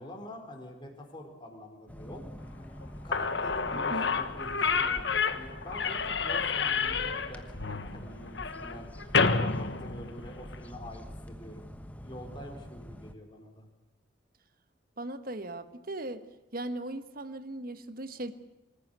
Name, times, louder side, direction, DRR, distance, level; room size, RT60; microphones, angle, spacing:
voice 1, 0.0-2.3 3.0-8.9 9.1-11.7 12.0-13.7, left 1 dB, 25° left, 2 dB, 4.4 m, -46 dB
sound 1, 1.9-13.1, equal, 10° left, 1.2 m, -45 dB
Slam / Squeak, 2.8-2.9 3.1-10.6, left 5 dB, 65° left, 1.4 m, -29 dB
voice 2, 3.7-4.1 15.0-16.2 16.5-18.3, right 1 dB, 50° right, 11 dB, 1.3 m, -38 dB
25.5 x 14.5 x 9.5 m, 1.0 s
head